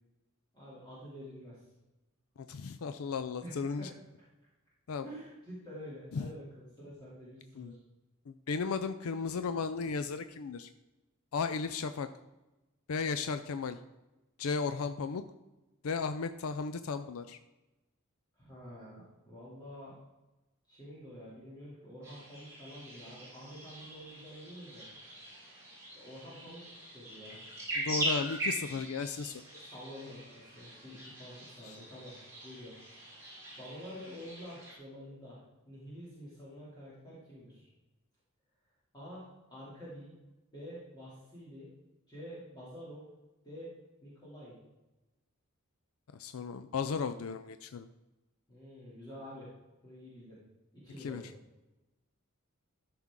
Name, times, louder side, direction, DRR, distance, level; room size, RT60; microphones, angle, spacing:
voice 1, 0.5-1.6 3.4-4.0 5.0-7.8 18.4-19.9 20.7-24.9 25.9-27.4 29.5-32.1 32.4-32.7 33.0-35.4 35.7-37.7 38.9-40.1 40.5-41.7 42.1-43.1 43.4-43.7 44.0-44.6 48.5-49.5 49.8-50.4 50.8-51.3, equal, 20° left, -9 dB, 2.8 m, -48 dB
voice 2, 2.5-3.9 4.9-5.0 6.1-6.3 7.6-7.8 8.3-10.7 11.3-12.1 12.9-13.8 14.4-15.2 15.8-17.4 27.8-29.4 31.7-31.8 46.2-47.9 51.0-51.2, left 5 dB, 80° left, 10 dB, 0.4 m, -35 dB
sound 1, 22.0-34.8, right 1 dB, 15° right, 3.8 m, -41 dB
13.0 x 6.0 x 3.7 m, 1.0 s
head